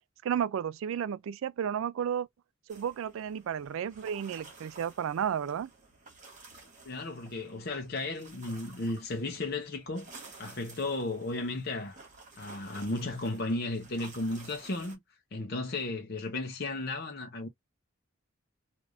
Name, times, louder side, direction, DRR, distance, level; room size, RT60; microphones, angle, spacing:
voice 1, 0.2-2.3 2.7-5.7, right 8 dB, 75° right, 0.3 m, -32 dB
sound 1, 2.7-15.0, right 3 dB, 35° right, 1.4 m, -53 dB
voice 2, 6.8-12.0 12.4-15.0 15.3-17.5, left 2 dB, 50° left, 0.7 m, -34 dB
3.3 x 2.5 x 2.4 m
head